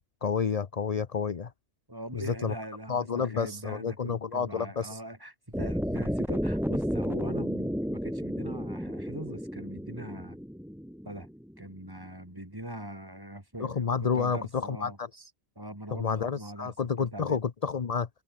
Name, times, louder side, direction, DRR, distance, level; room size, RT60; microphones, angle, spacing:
voice 1, 0.2-1.5 2.1-2.5 2.9-5.0 13.6-15.3 15.9-18.1, left 6 dB, 40° left, 0.8 m, -30 dB
voice 2, 1.9-10.4 11.1-11.3 11.6-15.0 15.6-16.7 17.1-17.4, right 1 dB, 20° right, 3.5 m, -42 dB
sound 1, 5.5-11.6, equal, ahead, 3.4 m, -32 dB
omnidirectional pair, 1.2 m